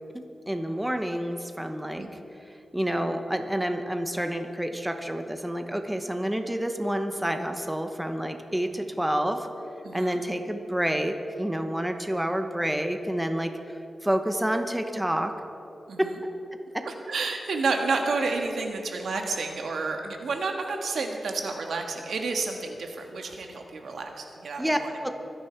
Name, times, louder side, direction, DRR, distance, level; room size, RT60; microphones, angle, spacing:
voice 1, 0.1-2.1 2.7-9.5 9.9-13.8 14.0-15.3 16.0-16.1 24.6-25.1, equal, 5° right, 6 dB, 1.0 m, -28 dB
voice 2, 9.8-10.2 15.9-16.2 16.8-24.9, right 3 dB, 90° right, 3 dB, 1.6 m, -30 dB
24.5 x 10.0 x 4.6 m, 2.9 s
wide cardioid pair, 105°, 0 cm